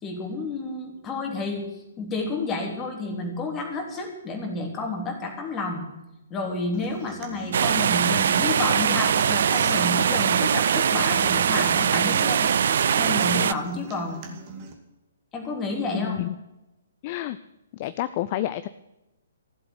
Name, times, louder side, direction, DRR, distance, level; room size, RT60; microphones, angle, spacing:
voice 1, 0.0-1.7 2.0-5.8 6.3-12.5 12.9-14.2 15.3-16.2, left 3 dB, 15° left, 1 dB, 3.3 m, -30 dB
Human voice / Acoustic guitar, 6.7-14.7, right 6 dB, 30° right, 2.3 m, -41 dB
sound 1, 7.5-13.5, right 8 dB, 50° right, 0.5 m, -22 dB
voice 2, 15.9-16.3 17.0-17.4 17.7-18.7, left 14 dB, 35° left, 13 dB, 0.5 m, -29 dB
15.0 x 7.8 x 9.7 m, 0.94 s
figure-of-eight pair, 125°, 0 cm